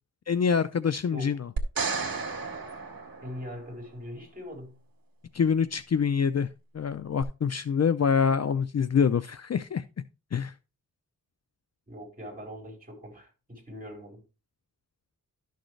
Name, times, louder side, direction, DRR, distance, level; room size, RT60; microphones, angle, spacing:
voice 1, 0.3-1.5 5.3-6.5 6.7-9.8 10.3-10.5, left 6 dB, 50° left, 0.5 m, -25 dB
sound 1, 1.6-3.9 7.2-7.3, right 4 dB, 70° right, 2.0 m, -33 dB
voice 2, 3.2-4.8 11.9-14.2, equal, 25° right, 5.2 m, -41 dB
12.0 x 6.5 x 3.2 m
wide cardioid pair, 120°, 35 cm